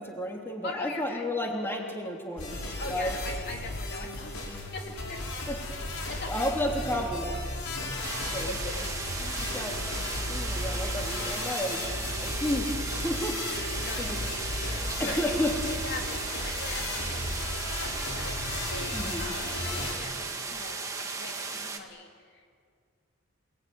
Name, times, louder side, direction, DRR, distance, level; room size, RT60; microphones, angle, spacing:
voice 1, 0.0-2.6 2.9-3.2 5.5-5.6 6.3-7.4 8.3-8.6 9.2-9.8 10.3-11.9 12.2-12.7 13.0-13.4 14.0-14.3 15.0-15.5 18.9-19.3, left 1 dB, 10° left, 0 dB, 3.2 m, -32 dB
voice 2, 0.6-1.3 2.8-4.4 4.7-5.2 6.1-6.6 8.4-8.9 12.1-12.4 13.8-15.2 15.8-22.5, left 2 dB, 50° left, 1 dB, 2.8 m, -42 dB
sound 1, 2.4-19.9, left 2 dB, 90° left, 5.8 m, -35 dB
sound 2, 8.0-21.8, right 4 dB, 15° right, 1.9 m, -36 dB
29.0 x 19.0 x 9.7 m, 2.1 s
head